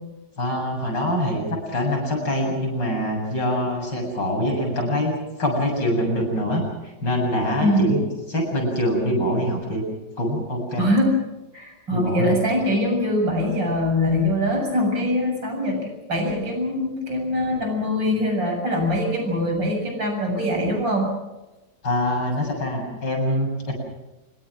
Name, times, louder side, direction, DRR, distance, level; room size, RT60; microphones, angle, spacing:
voice 1, 0.4-1.4 1.7-8.0 8.3-9.8 10.2-10.9 11.9-12.4 21.8-23.7, equal, 75° left, 1 dB, 8.5 m, -24 dB
voice 2, 7.6-7.9 10.8-11.1 11.5-21.1, left 1 dB, 85° right, 2 dB, 8.0 m, -23 dB
26.5 x 22.0 x 6.2 m, 1.0 s
omnidirectional pair, 1.9 m